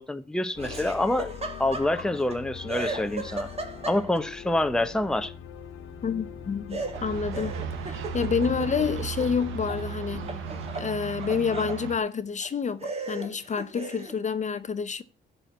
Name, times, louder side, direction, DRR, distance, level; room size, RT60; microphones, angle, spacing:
voice 1, 0.0-1.3 1.6-3.5 3.9-5.3, left 1 dB, 5° left, 0.7 m, -26 dB
sound 1, 0.5-10.7, left 8 dB, 90° left, 1.4 m, -42 dB
Laughter, 0.6-2.4 2.7-4.3 6.7-9.8 10.1-11.8 12.4-12.5 12.8-14.2, right 2 dB, 30° right, 2.0 m, -37 dB
voice 2, 6.0-7.6 7.8-10.4 10.7-15.0, left 6 dB, 35° left, 0.7 m, -28 dB
sound 2, 6.9-12.0, right 11 dB, 85° right, 0.9 m, -36 dB
11.5 x 4.4 x 8.1 m
cardioid pair, 90°, 20 cm